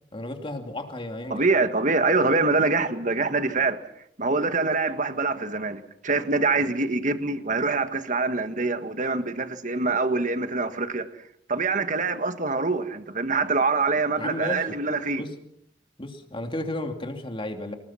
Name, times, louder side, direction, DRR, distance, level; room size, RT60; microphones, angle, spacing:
voice 1, 0.1-1.4 14.2-14.8 15.2-15.3 16.0-17.7, left 1 dB, 30° left, 2.7 m, -33 dB
voice 2, 1.3-3.8 4.2-11.1 11.5-15.2, right 3 dB, 45° right, 1.7 m, -25 dB
26.0 x 20.5 x 5.8 m
head